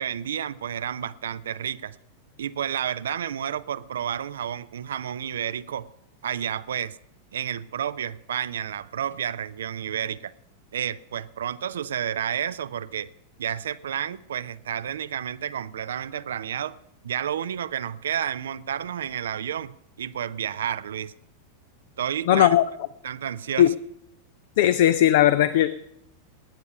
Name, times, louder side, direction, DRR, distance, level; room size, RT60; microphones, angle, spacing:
voice 1, 0.0-2.0 2.4-5.9 6.2-7.0 7.3-10.3 10.7-13.1 13.4-16.8 17.0-21.1 22.0-22.5 23.0-23.7, right 9 dB, 65° right, 0.4 m, -30 dB
voice 2, 22.3-22.6 23.6-23.7 24.6-25.7, left 12 dB, 55° left, 0.5 m, -18 dB
19.0 x 9.2 x 5.3 m
figure-of-eight pair, 90°, 0 cm